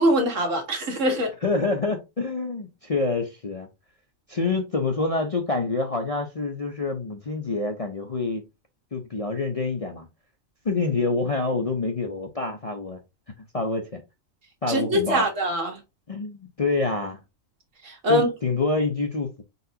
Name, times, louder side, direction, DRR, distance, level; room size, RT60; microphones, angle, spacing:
voice 1, 0.0-1.3 14.7-15.8 17.8-18.3, equal, 70° right, 1.9 m, -23 dB
voice 2, 1.4-3.7 4.3-8.4 8.9-10.1 10.6-13.0 13.5-14.0 14.6-15.3 16.1-17.2 18.1-19.4, left 3 dB, 35° left, 0.6 m, -27 dB
4.8 x 4.1 x 2.7 m
omnidirectional pair, 1.4 m